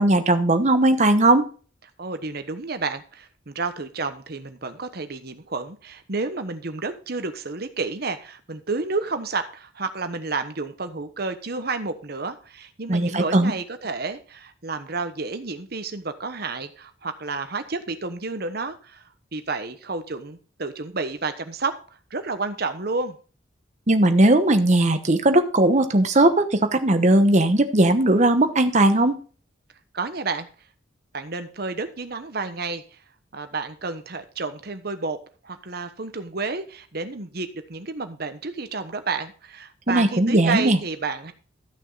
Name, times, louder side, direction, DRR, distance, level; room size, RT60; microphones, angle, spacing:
voice 1, 0.0-1.4 12.9-13.5 23.9-29.2 39.9-40.8, right 1 dB, 40° right, 8 dB, 1.0 m, -18 dB
voice 2, 2.0-19.0 19.3-21.8 22.1-23.2 29.9-30.5 31.1-32.8 33.3-35.2 35.4-41.3, right 3 dB, 55° right, 9 dB, 1.2 m, -30 dB
13.5 x 6.3 x 4.0 m, 0.38 s
head